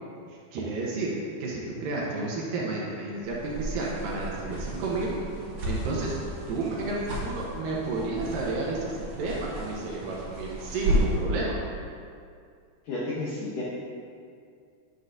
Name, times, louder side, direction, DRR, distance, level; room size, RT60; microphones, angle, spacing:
voice 1, 0.3-1.1 1.4-5.1 5.7-6.2 6.5-11.6, right 3 dB, 75° right, -4 dB, 2.1 m, -31 dB
sound 1, 3.2-11.3, right 1 dB, 50° right, 1.7 m, -33 dB
voice 2, 12.9-13.6, left 2 dB, 85° left, -6 dB, 1.8 m, -31 dB
9.5 x 7.9 x 2.6 m, 2.3 s
omnidirectional pair, 5.4 m